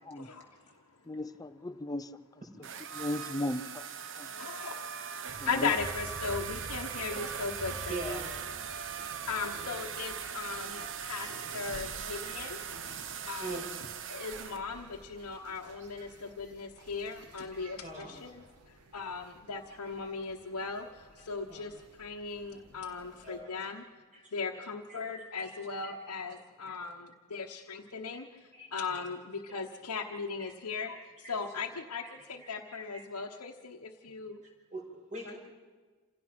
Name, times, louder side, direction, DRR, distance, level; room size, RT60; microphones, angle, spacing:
voice 1, 0.1-0.7 2.9-3.0 4.1-5.0 5.4-8.2 9.3-12.6 13.3-13.6 14.1-23.8 24.3-34.4 35.2-35.3, left 5 dB, 90° left, 0 dB, 1.1 m, -38 dB
voice 2, 1.1-2.2 2.9-3.8 4.2-4.3 5.4-5.7, left 1 dB, 15° left, 12 dB, 0.6 m, -36 dB
sound 1, 2.6-14.6, right 8 dB, 60° right, 1.0 m, -40 dB
sound 2, 5.3-23.4, right 1 dB, 85° right, 1.8 m, -51 dB
voice 3, 7.9-8.3 13.4-13.7 15.8-16.1 17.5-18.2 21.5-21.6 22.8-23.6 24.1-24.2 25.5-25.9 26.7-26.8 28.1-28.2 28.5-29.0 30.4-30.5 31.2-31.3 32.9-33.1 34.7-35.4, right 2 dB, 35° right, 0 dB, 5.5 m, -43 dB
27.5 x 17.0 x 6.0 m, 1.4 s
head